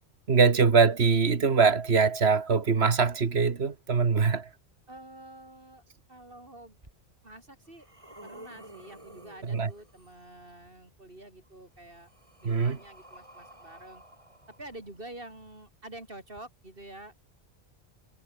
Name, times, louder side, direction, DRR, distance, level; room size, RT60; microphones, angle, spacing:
voice 1, 0.3-4.5 9.4-9.7 12.4-12.8, right 5 dB, 70° right, 1.9 m, -23 dB
voice 2, 4.9-5.8 6.1-6.8 7.2-7.9 8.2-12.1 12.4-14.0 14.6-17.2, right 1 dB, 55° right, 5.8 m, -47 dB
sound 1, 6.8-6.9 7.5-10.2 11.4-15.3 16.3-16.4, right 1 dB, 30° right, 5.7 m, -52 dB
omnidirectional pair, 1.1 m